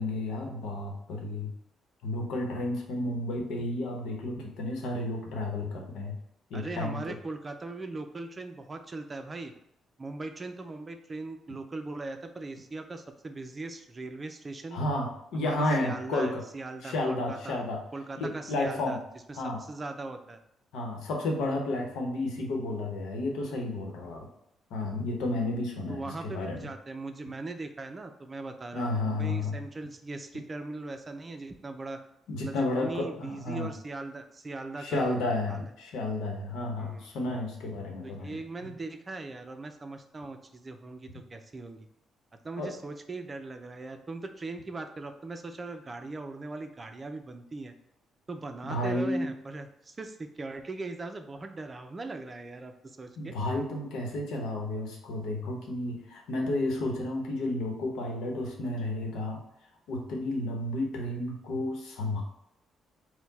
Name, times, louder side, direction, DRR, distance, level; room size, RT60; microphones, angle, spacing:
voice 1, 0.0-1.5 2.0-6.2 6.5-7.1 14.7-16.4 16.8-17.8 18.2-19.0 19.3-19.6 20.7-24.3 24.7-26.6 28.7-29.6 32.3-33.7 34.8-38.7 42.6-42.7 48.6-49.3 53.2-59.4 59.9-62.2, left 2 dB, 85° left, 1 dB, 0.9 m, -32 dB
voice 2, 6.5-9.5 10.0-14.8 15.3-17.7 17.9-19.0 19.3-20.4 25.9-32.0 32.4-35.2 35.5-35.7 36.8-37.1 38.0-41.9 42.4-47.7 48.3-53.3, right 3 dB, 30° right, 6 dB, 0.5 m, -40 dB
4.4 x 2.2 x 4.1 m, 0.79 s
cardioid pair, 90°, 0 cm